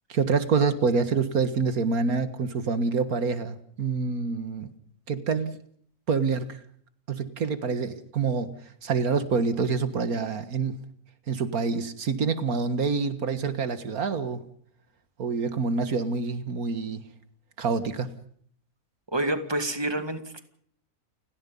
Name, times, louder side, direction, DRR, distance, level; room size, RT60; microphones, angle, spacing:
voice 1, 0.1-4.7 5.1-5.6 6.1-6.6 7.1-8.5 8.8-10.8 11.3-14.4 15.2-17.0 17.6-18.1, right 5 dB, 85° right, 11 dB, 2.1 m, -26 dB
voice 2, 19.1-20.4, right 1 dB, 15° right, 8 dB, 2.3 m, -28 dB
30.0 x 18.5 x 5.4 m, 0.63 s
omnidirectional pair, 1.5 m